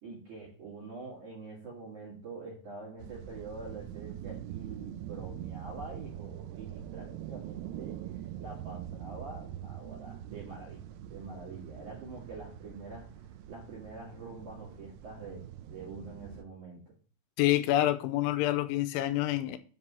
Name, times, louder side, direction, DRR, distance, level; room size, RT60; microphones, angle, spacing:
voice 1, 0.0-8.0 8.4-16.9, right 3 dB, 45° right, 3.4 m, -45 dB
sound 1, 3.0-16.4, right 11 dB, 85° right, 2.4 m, -44 dB
voice 2, 17.4-19.6, left 14 dB, 80° left, 3.1 m, -27 dB
7.5 x 5.5 x 5.5 m
omnidirectional pair, 5.6 m